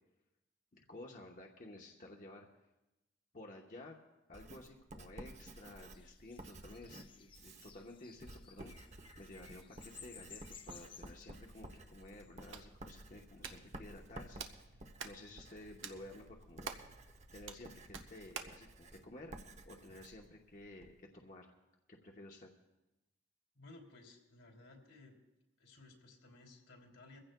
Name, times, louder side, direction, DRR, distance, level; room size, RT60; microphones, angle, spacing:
voice 1, 0.7-2.5 3.3-4.0 4.3-8.7 9.2-14.4 14.7-16.8 17.3-19.4 19.6-21.5 21.9-22.5, left 1 dB, 40° left, 0 dB, 0.9 m, -53 dB
Writing, 4.3-21.0, right 1 dB, 35° right, 0.7 m, -54 dB
sound 1, 5.5-12.3, left 7 dB, 25° left, 0.5 m, -58 dB
Hands, 12.1-18.6, right 6 dB, 80° right, 1.0 m, -51 dB
voice 2, 23.5-25.2 25.6-27.2, left 2 dB, 85° left, 1 dB, 2.9 m, -58 dB
23.5 x 15.5 x 2.2 m, 0.97 s
head